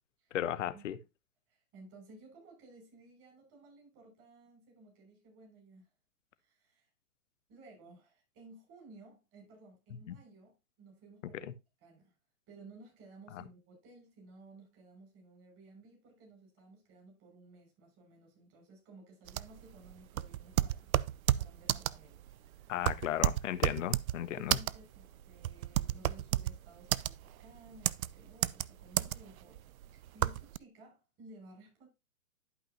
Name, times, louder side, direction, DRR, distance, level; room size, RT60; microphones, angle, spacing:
voice 1, 0.3-1.0 10.1-10.2 11.4-11.5 13.3-13.4 22.7-24.6, left 11 dB, 60° left, 1.0 m, -35 dB
voice 2, 1.5-5.9 6.4-6.9 7.5-11.4 11.8-12.1 12.5-20.9 21.4-22.2 24.3-31.9, right 2 dB, 30° right, 6.1 m, -57 dB
typewriting slow, 19.3-30.6, right 13 dB, 75° right, 0.5 m, -32 dB
11.5 x 5.6 x 2.8 m
hypercardioid pair, 130°, 42 cm